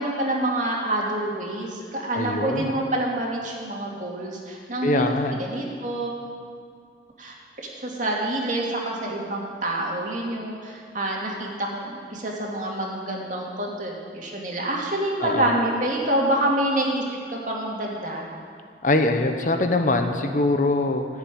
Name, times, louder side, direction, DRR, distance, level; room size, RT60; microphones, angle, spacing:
voice 1, 0.0-5.1 5.4-6.1 7.2-7.3 7.8-17.0 17.3-18.3, right 1 dB, 45° right, -2 dB, 2.3 m, -27 dB
voice 2, 2.1-2.7 4.8-5.4 15.2-15.5 18.8-21.0, left 2 dB, 45° left, 5 dB, 0.9 m, -23 dB
14.0 x 7.2 x 9.3 m, 2.1 s
head